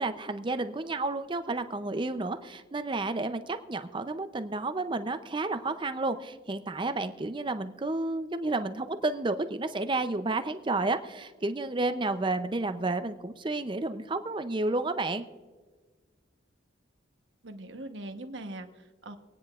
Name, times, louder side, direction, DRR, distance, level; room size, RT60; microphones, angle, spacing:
voice 1, 0.0-15.3, right 2 dB, 25° right, 9 dB, 0.5 m, -31 dB
voice 2, 17.4-19.2, right 1 dB, 70° right, 6 dB, 1.1 m, -41 dB
25.5 x 9.5 x 2.4 m, 1.4 s
head